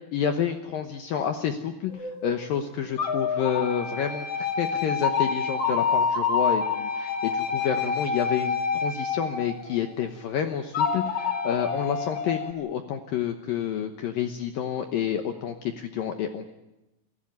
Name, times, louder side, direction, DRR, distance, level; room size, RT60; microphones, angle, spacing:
voice 1, 0.1-16.5, left 8 dB, 75° left, 6 dB, 2.1 m, -29 dB
sound 1, 1.9-2.5 3.0-10.1 10.7-12.5, left 5 dB, 40° left, 2.7 m, -27 dB
27.5 x 15.5 x 9.5 m, 0.98 s
omnidirectional pair, 5.5 m